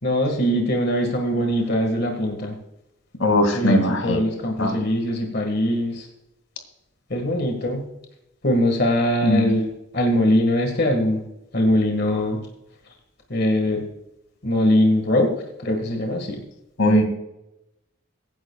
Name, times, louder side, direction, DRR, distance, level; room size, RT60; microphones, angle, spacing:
voice 1, 0.0-2.6 3.5-6.1 7.1-7.8 8.4-11.2 11.5-12.4 13.3-13.8 14.4-15.3 15.6-16.4, left 1 dB, 50° left, 3 dB, 1.8 m, -22 dB
voice 2, 3.2-4.2 4.6-4.8 9.2-9.5 16.8-17.0, left 1 dB, 85° left, 5 dB, 2.4 m, -19 dB
22.5 x 10.5 x 2.4 m, 0.88 s
head